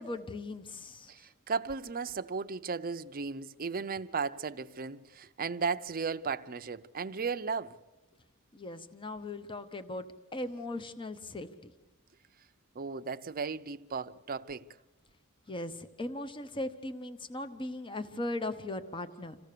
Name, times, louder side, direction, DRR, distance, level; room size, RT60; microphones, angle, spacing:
voice 1, 0.0-1.1 8.5-10.0 10.3-11.7 15.5-19.4, left 2 dB, 20° left, 0.8 m, -38 dB
voice 2, 1.1-7.7 12.8-14.7, right 5 dB, 40° right, 0.6 m, -35 dB
27.0 x 15.5 x 6.8 m
head